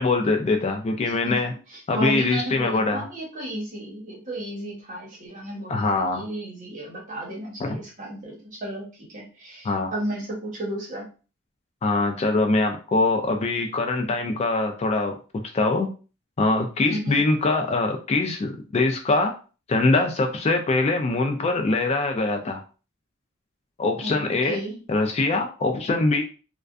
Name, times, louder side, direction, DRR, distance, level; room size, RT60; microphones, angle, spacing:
voice 1, 0.0-1.5 1.9-3.1 5.7-6.2 7.6-7.8 9.6-9.9 11.8-15.1 15.5-15.9 16.4-19.3 19.7-22.6 23.8-24.6 24.9-26.2, left 3 dB, 30° left, 4 dB, 0.3 m, -23 dB
voice 2, 1.0-1.4 1.7-11.1 16.9-17.2 24.0-24.2 24.5-24.8, right 1 dB, 40° right, -3 dB, 1.0 m, -33 dB
2.4 x 2.2 x 2.4 m, 0.35 s
head